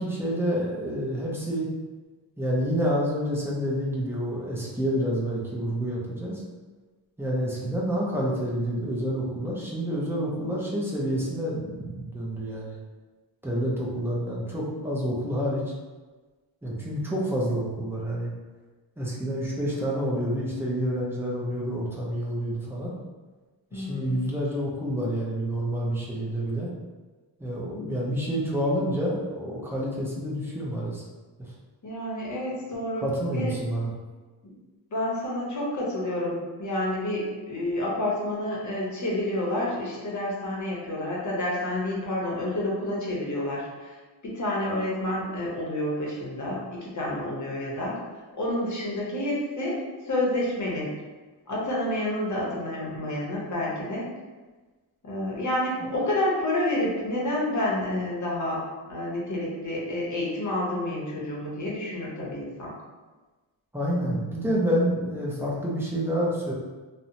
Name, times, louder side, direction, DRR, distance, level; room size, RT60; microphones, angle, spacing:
voice 1, 0.0-1.7 2.4-6.4 7.2-12.8 13.4-15.6 16.6-18.3 19.0-22.9 23.7-26.7 27.4-31.0 33.0-33.9 55.8-55.9 63.7-66.5, equal, 5° right, -5 dB, 0.4 m, -28 dB
voice 2, 23.7-24.2 27.7-27.9 31.8-33.0 33.3-33.5 34.9-44.0 44.2-48.0 48.4-50.9 51.5-54.1 55.0-62.7, left 1 dB, 40° left, -4 dB, 0.7 m, -29 dB
2.8 x 2.1 x 2.5 m, 1.3 s
wide cardioid pair, 150°, 45 cm